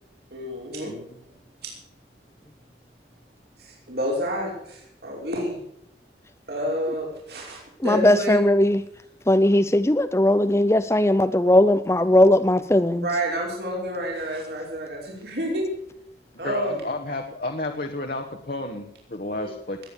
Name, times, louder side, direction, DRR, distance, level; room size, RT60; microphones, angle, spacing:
voice 1, 0.3-0.9 1.6-1.7 3.6-5.6 6.5-8.4 12.9-15.7 16.4-16.9 19.4-19.5, equal, 70° right, -2 dB, 5.5 m, -29 dB
voice 2, 0.8-1.2 16.4-19.8, left 2 dB, 55° left, 3 dB, 1.4 m, -31 dB
voice 3, 7.8-8.8 9.3-13.1, left 1 dB, 15° left, 10 dB, 0.6 m, -18 dB
20.0 x 9.3 x 7.0 m, 0.74 s
head